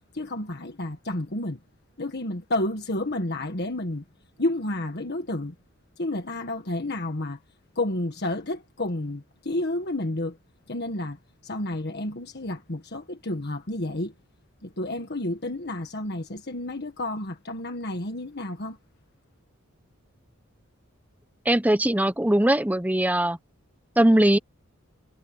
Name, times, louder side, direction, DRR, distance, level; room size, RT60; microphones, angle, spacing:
voice 1, 0.1-1.6 2.0-4.0 4.4-5.5 6.0-7.4 7.7-10.4 10.7-14.1 14.6-18.8, left 1 dB, 50° left, 1.6 m, -30 dB
voice 2, 21.5-23.4 24.0-24.4, right 1 dB, 10° right, 0.8 m, -20 dB
head